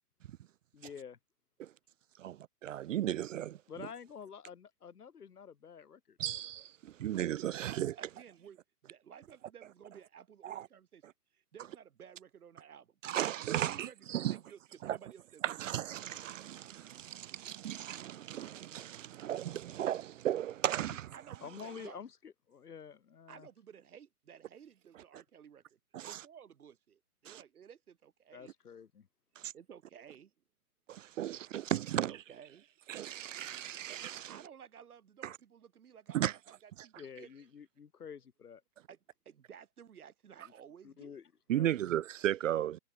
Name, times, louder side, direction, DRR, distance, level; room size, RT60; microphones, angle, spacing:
voice 1, 0.7-1.2 3.7-6.4 20.9-21.0 21.4-23.5 28.3-29.1 37.0-38.6 40.4-40.5 40.8-41.7, left 7 dB, 85° left, 4.0 m, -49 dB
voice 2, 2.2-3.6 6.2-7.9 10.4-10.7 13.0-14.4 14.8-15.0 15.4-21.1 25.9-26.2 27.3-27.4 29.4-29.5 30.9-32.2 32.9-34.4 35.2-35.4 36.1-36.4 41.5-42.8, right 12 dB, 60° right, 0.5 m, -35 dB
voice 3, 8.0-8.6 8.8-11.0 11.3-13.0 13.6-15.7 21.1-22.0 23.3-25.8 26.1-28.5 29.5-30.3 32.1-32.6 34.3-37.3 38.9-39.0 39.3-41.2, right 8 dB, 75° right, 3.7 m, -55 dB
hypercardioid pair, 155°, 45 cm